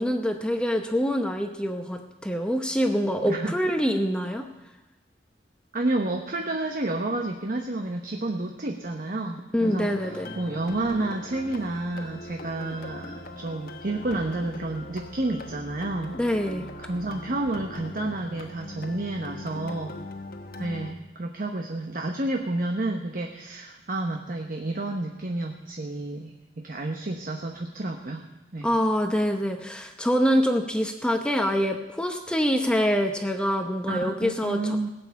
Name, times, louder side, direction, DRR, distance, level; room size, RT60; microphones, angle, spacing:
voice 1, 0.0-4.4 9.5-10.3 16.2-16.7 28.6-34.8, equal, 5° left, 4 dB, 0.8 m, -25 dB
voice 2, 5.7-16.2 16.9-19.9 20.6-28.3 28.5-28.7 33.9-34.9, right 2 dB, 50° right, 3 dB, 0.9 m, -30 dB
sound 1, 9.6-20.9, left 1 dB, 55° left, 1.2 m, -41 dB
17.0 x 7.1 x 8.3 m, 1.0 s
head